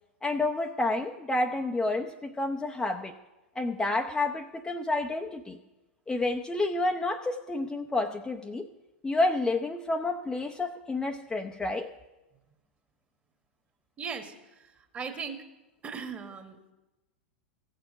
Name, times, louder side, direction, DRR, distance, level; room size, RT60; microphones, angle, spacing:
voice 1, 0.2-3.1 3.6-5.6 6.1-8.7 9.0-11.9, left 2 dB, 10° left, 3 dB, 0.7 m, -29 dB
voice 2, 14.0-15.4 15.8-16.7, right 6 dB, 20° right, 6 dB, 1.5 m, -39 dB
15.5 x 7.1 x 7.8 m, 1.1 s
figure-of-eight pair, 95°, 6 cm